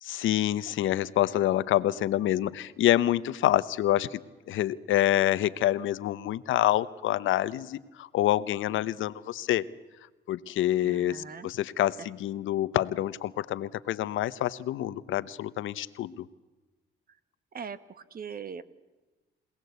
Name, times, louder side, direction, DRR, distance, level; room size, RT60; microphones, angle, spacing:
voice 1, 0.0-4.2 4.5-9.6 10.3-16.3, left 13 dB, 80° left, 16 dB, 0.9 m, -27 dB
voice 2, 10.8-11.5 17.5-18.6, right 6 dB, 50° right, 14 dB, 1.5 m, -40 dB
27.0 x 18.0 x 8.1 m, 1.2 s
cardioid pair, 90°, 20 cm